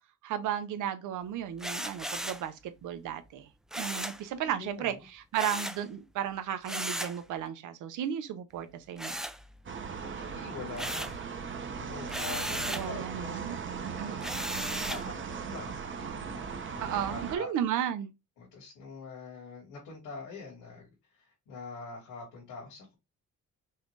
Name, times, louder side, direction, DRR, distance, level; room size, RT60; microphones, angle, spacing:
voice 1, 0.2-3.5 3.8-9.2 12.7-13.6 13.9-14.1 16.8-18.1, right 9 dB, 85° right, 0.9 m, -34 dB
sound 1, 1.6-2.5 3.7-4.2 5.3-5.8 6.6-7.2 9.0-9.8 10.2-11.2 12.1-12.9 14.2-15.1, right 1 dB, ahead, 0.4 m, -36 dB
voice 2, 4.4-5.0 10.0-11.2 11.7-13.4 13.7-14.4 14.8-17.5 18.4-22.9, left 4 dB, 85° left, 2.5 m, -45 dB
sound 2, 9.7-17.4, right 6 dB, 40° right, 0.9 m, -38 dB
5.6 x 2.6 x 3.2 m
cardioid pair, 90°, 30 cm